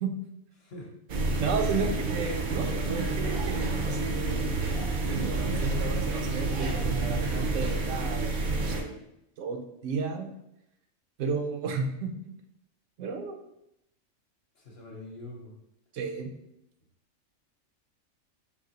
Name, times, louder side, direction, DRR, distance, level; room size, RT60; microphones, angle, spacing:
voice 1, 0.6-0.9 14.5-15.5, left 1 dB, 55° left, -1 dB, 1.0 m, -44 dB
sound 1, 1.1-8.8, right 3 dB, 55° right, 0.6 m, -29 dB
voice 2, 1.4-4.7 5.1-8.9 9.4-10.3 11.2-12.1 13.0-13.4 15.9-16.3, right 4 dB, 75° right, 4 dB, 0.9 m, -33 dB
4.5 x 2.9 x 2.8 m, 0.82 s
omnidirectional pair, 1.4 m